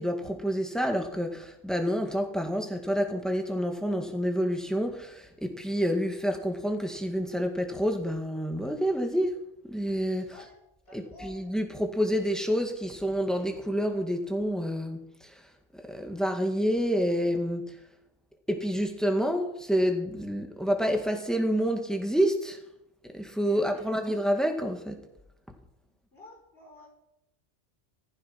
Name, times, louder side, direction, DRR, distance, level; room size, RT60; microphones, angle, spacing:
voice 1, 0.0-9.4 9.7-10.3 10.9-15.4 15.9-17.8 18.5-22.6 23.1-25.1, equal, ahead, 2.0 m, -28 dB
voice 2, 10.3-10.6 10.8-11.5 23.4-24.0 26.1-26.9, left 2 dB, 50° left, 6.6 m, -51 dB
15.5 x 14.5 x 6.0 m
omnidirectional pair, 1.2 m